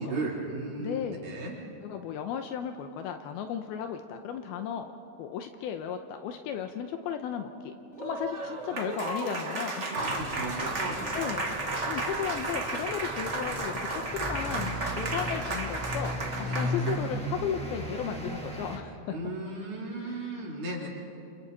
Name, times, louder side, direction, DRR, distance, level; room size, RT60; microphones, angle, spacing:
voice 1, 0.0-1.6 9.9-11.1 16.4-16.8 19.1-20.9, right 2 dB, 50° right, -3 dB, 5.0 m, -35 dB
voice 2, 0.8-1.3 1.8-4.9 5.2-9.9 11.1-11.6 11.9-16.1 16.5-19.2 20.0-20.3, left 8 dB, 80° left, 6 dB, 2.6 m, -35 dB
Applause, 7.9-17.1, right 2 dB, 85° right, 0.6 m, -33 dB
sound 1, 9.9-18.8, equal, 5° left, 1.3 m, -37 dB
29.5 x 28.5 x 4.2 m, 2.9 s
omnidirectional pair, 4.6 m